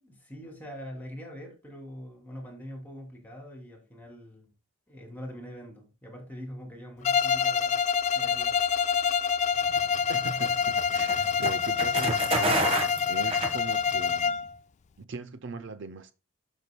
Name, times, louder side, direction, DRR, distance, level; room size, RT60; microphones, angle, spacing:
voice 1, 0.0-4.5 4.9-7.8 8.1-8.6, equal, 10° left, 2.8 m, -43 dB
Bowed string instrument, 7.0-14.5, left 6 dB, 35° left, 0.3 m, -26 dB
sound 1, 9.7-14.1, right 2 dB, 25° right, 1.4 m, -30 dB
voice 2, 10.1-14.5 15.0-16.1, right 4 dB, 60° right, 0.6 m, -40 dB
12.0 x 6.2 x 2.2 m
head